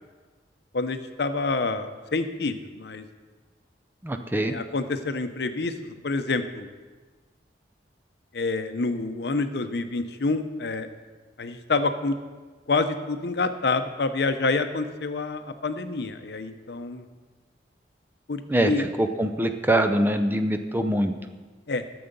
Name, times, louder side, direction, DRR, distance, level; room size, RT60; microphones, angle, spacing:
voice 1, 0.7-3.1 4.5-6.7 8.3-10.9 11.4-12.1 12.7-17.0 18.3-18.8 21.7-21.8, left 3 dB, 65° left, 9 dB, 0.7 m, -27 dB
voice 2, 4.0-4.5 18.5-21.1, right 1 dB, 10° right, 6 dB, 0.5 m, -24 dB
12.5 x 7.0 x 5.3 m, 1.3 s
head